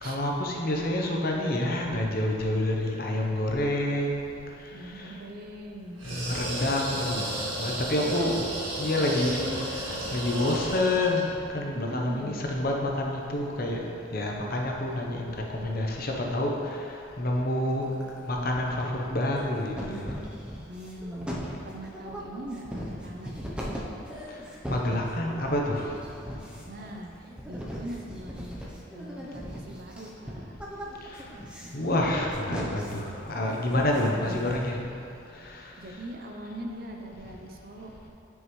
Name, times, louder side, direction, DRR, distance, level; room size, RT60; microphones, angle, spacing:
voice 1, 0.0-4.3 4.9-5.1 6.0-8.4 8.8-9.5 9.8-11.3 11.5-13.8 14.1-16.8 17.2-17.9 18.3-20.1 24.7-25.9 31.1-31.2 31.7-34.8 35.4-35.6, left 1 dB, 45° left, 0 dB, 0.8 m, -28 dB
voice 2, 4.7-6.1 8.0-9.1 11.7-12.4 20.7-21.3 21.6-23.5 26.7-30.6 33.9-34.5 35.8-37.9, right 1 dB, 45° right, 2 dB, 0.6 m, -41 dB
sound 1, 6.0-11.3, right 1 dB, 75° right, 1.6 m, -33 dB
sound 2, 17.7-18.2 18.5-19.4 19.7-34.9, equal, 5° right, 0.7 m, -38 dB
9.4 x 5.4 x 3.1 m, 2.7 s
head